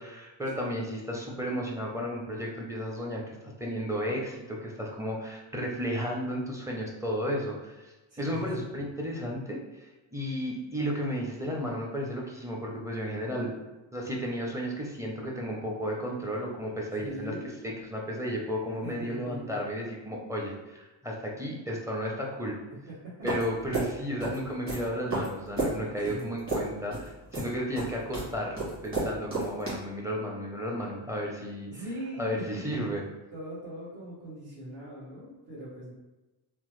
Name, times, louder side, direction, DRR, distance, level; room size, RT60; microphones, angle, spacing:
voice 1, 0.0-13.5 13.9-17.3 17.6-22.6 23.2-31.7 32.2-33.0, equal, 5° right, -2 dB, 0.6 m, -33 dB
voice 2, 8.1-8.6 17.0-17.5 18.8-19.5 22.7-22.8 23.0-23.1 26.0-26.2 31.6-32.6 33.3-35.9, right 1 dB, 50° right, -11 dB, 1.3 m, -40 dB
sound 1, 23.3-29.7, right 2 dB, 25° right, 1.4 m, -32 dB
3.0 x 2.1 x 3.1 m, 1.1 s
cardioid pair, 90°, 47 cm